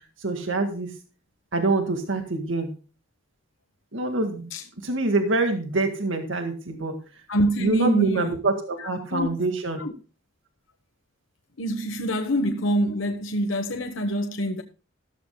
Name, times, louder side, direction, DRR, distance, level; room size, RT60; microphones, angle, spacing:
voice 1, 0.2-0.9 1.5-2.7 3.9-4.5 4.8-7.0 7.6-9.8, right 2 dB, 80° right, 1.9 m, -25 dB
voice 2, 7.3-8.4 8.8-9.3 9.8-9.9 11.6-14.6, right 1 dB, 90° left, 1.1 m, -25 dB
14.5 x 14.0 x 2.2 m
head